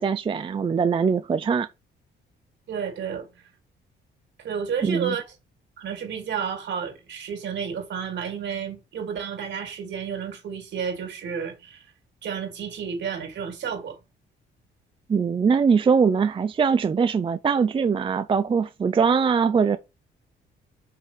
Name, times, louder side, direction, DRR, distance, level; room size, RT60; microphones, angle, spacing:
voice 1, 0.0-1.7 4.8-5.2 15.1-19.8, right 6 dB, 25° right, 0.4 m, -22 dB
voice 2, 2.7-3.3 4.4-5.2 5.8-11.8 12.2-14.0, right 7 dB, 65° right, 2.5 m, -31 dB
5.5 x 3.3 x 5.6 m
cardioid pair, 90°, 20 cm